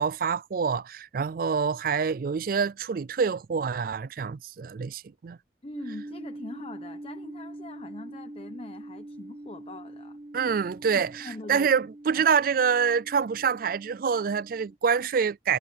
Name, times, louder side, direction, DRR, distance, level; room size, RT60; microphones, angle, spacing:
voice 1, 0.0-5.4 10.3-15.6, right 6 dB, 55° right, 0.4 m, -26 dB
voice 2, 5.6-10.2 10.9-11.7, left 2 dB, 35° left, 0.9 m, -42 dB
sound 1, 5.7-14.8, right 1 dB, 30° right, 1.7 m, -43 dB
head